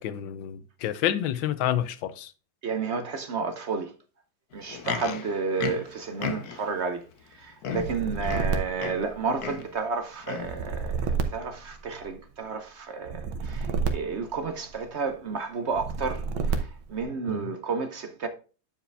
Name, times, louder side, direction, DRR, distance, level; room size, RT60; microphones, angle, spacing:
voice 1, 0.0-2.3 17.3-17.5, left 11 dB, 80° left, 1.5 m, -29 dB
voice 2, 2.6-3.9 4.5-7.0 7.3-18.3, right 5 dB, 55° right, 0.8 m, -31 dB
Livestock farm animals working animals, 4.5-6.7 7.3-7.4 7.6-9.1 9.4-9.7 10.2-10.6 11.3-11.4, left 7 dB, 60° left, 1.3 m, -35 dB
sound 1, 7.7-9.7 10.4-12.3 13.0-15.0 15.7-17.0, right 5 dB, 90° right, 1.8 m, -31 dB
10.0 x 4.9 x 3.3 m
omnidirectional pair, 2.1 m